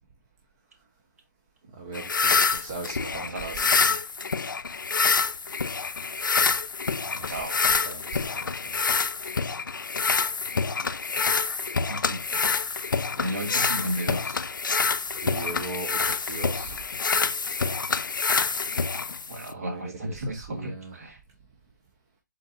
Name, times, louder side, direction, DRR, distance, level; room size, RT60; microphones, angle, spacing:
voice 1, 1.8-3.7 7.1-7.5 7.8-8.9 15.2-16.8 19.5-21.1, right 3 dB, 15° right, 0.4 m, -39 dB
sound 1, 1.9-19.5, left 5 dB, 85° left, 0.4 m, -27 dB
voice 2, 3.2-3.9 7.2-7.6 11.1-11.3 11.9-12.4 13.2-14.4 18.7-18.8 19.3-21.2, equal, 50° right, 1.3 m, -34 dB
3.7 x 3.7 x 2.7 m
hypercardioid pair, 165°, 10 cm